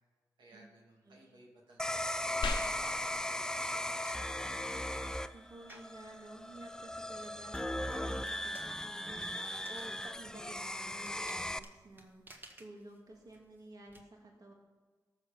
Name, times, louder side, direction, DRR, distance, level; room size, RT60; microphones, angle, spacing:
voice 1, 0.4-4.4, right 1 dB, 80° right, -2 dB, 2.5 m, -60 dB
sound 1, 1.8-11.6, left 1 dB, 10° left, 0.5 m, -38 dB
sound 2, 2.4-12.4, left 3 dB, 85° left, 1.0 m, -47 dB
voice 2, 5.3-14.5, right 2 dB, 55° right, 0 dB, 2.1 m, -53 dB
sound 3, 5.7-6.0 6.6-14.0, right 1 dB, 25° right, 1.8 m, -58 dB
13.0 x 6.8 x 6.8 m, 1.5 s
cardioid pair, 55°, 8 cm